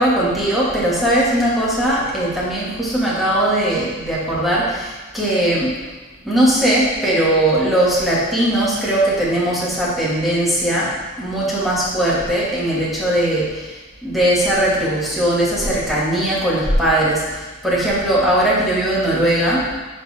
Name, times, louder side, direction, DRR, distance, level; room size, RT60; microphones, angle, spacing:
voice 1, 0.0-5.8 6.2-19.7, right 1 dB, ahead, -8 dB, 2.3 m, -19 dB
10.5 x 5.2 x 3.7 m, 1.2 s
head